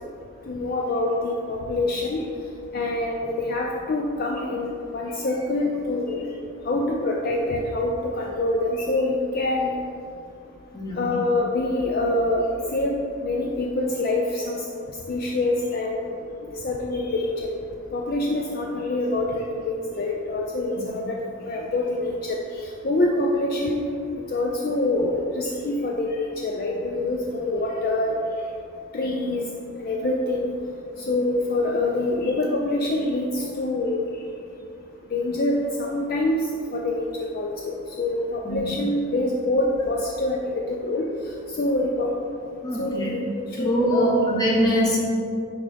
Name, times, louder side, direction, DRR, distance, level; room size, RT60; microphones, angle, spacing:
voice 1, 0.5-2.2 2.7-6.2 6.6-9.8 10.9-12.5 12.7-14.6 15.1-16.2 16.5-17.6 17.9-21.2 21.5-23.9 24.3-28.2 28.9-29.5 29.8-30.5 31.0-34.0 35.1-36.5 36.7-37.1 37.3-41.1 41.5-42.1 42.8-44.2, left 2 dB, 45° left, -1 dB, 0.4 m, -25 dB
voice 2, 42.6-43.1 43.5-45.0, equal, 20° left, -3 dB, 1.0 m, -23 dB
9.5 x 3.6 x 3.4 m, 2.5 s
head